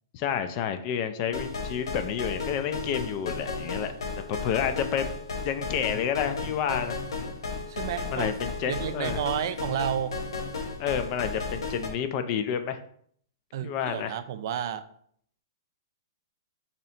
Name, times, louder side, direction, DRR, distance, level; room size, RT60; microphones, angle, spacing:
voice 1, 0.1-3.9 4.3-5.1 5.4-7.0 8.1-9.2 10.8-12.8 13.6-14.2, left 8 dB, 35° left, 8 dB, 0.3 m, -29 dB
sound 1, 1.3-11.9, left 4 dB, 85° left, 0.8 m, -34 dB
voice 2, 7.7-8.3 8.7-10.2 13.5-14.9, right 9 dB, 55° right, 11 dB, 0.3 m, -31 dB
3.2 x 2.8 x 4.1 m, 0.63 s
hypercardioid pair, 145°, 2 cm